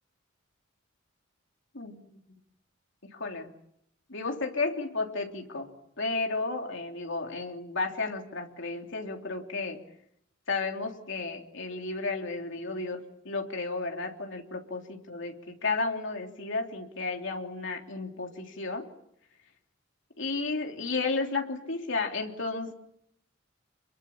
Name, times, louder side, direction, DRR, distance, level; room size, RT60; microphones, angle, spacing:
voice 1, 1.7-2.2 3.1-3.5 4.1-5.7 6.0-9.8 10.5-18.9 20.2-22.7, left 3 dB, 65° left, 2 dB, 3.4 m, -33 dB
27.5 x 22.5 x 7.3 m, 0.74 s
head